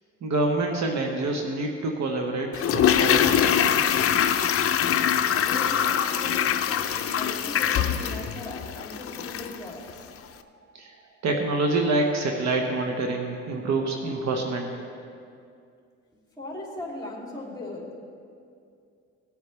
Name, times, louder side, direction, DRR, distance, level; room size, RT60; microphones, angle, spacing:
voice 1, 0.2-3.8 10.7-14.7, right 2 dB, 65° right, 2 dB, 1.2 m, -27 dB
Toilet flush, 2.5-9.6 9.9-10.0, left 9 dB, 50° left, 0.6 m, -23 dB
voice 2, 5.3-10.1 16.1-17.9, left 2 dB, 15° left, -3 dB, 3.0 m, -39 dB
18.0 x 8.2 x 3.3 m, 2.4 s
cardioid pair, 90°, 30 cm